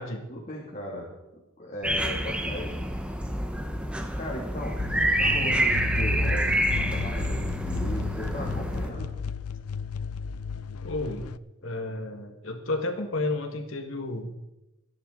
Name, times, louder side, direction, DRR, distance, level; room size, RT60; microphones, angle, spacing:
voice 1, 0.3-2.8 4.1-4.8 5.2-9.1, left 1 dB, 30° left, -4 dB, 2.8 m, -37 dB
sound 1, 1.8-8.9, right 1 dB, 5° right, 1.0 m, -27 dB
sound 2, 4.8-11.4, left 6 dB, 90° left, 0.5 m, -34 dB
voice 2, 10.8-11.3 11.6-14.4, left 2 dB, 65° left, 5 dB, 1.9 m, -32 dB
24.0 x 11.0 x 4.0 m, 0.96 s
head